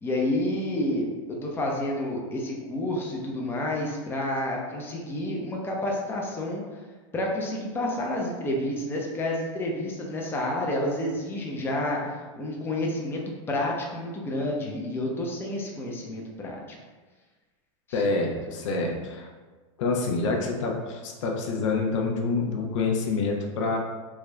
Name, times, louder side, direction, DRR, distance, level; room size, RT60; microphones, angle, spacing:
voice 1, 0.0-1.1 1.4-6.6 7.1-13.2 13.5-16.6, left 1 dB, 15° left, -1 dB, 0.6 m, -29 dB
voice 2, 17.9-19.3 19.8-23.8, left 3 dB, 70° left, 1 dB, 0.6 m, -27 dB
3.3 x 2.4 x 3.2 m, 1.3 s
supercardioid pair, 125°, 17 cm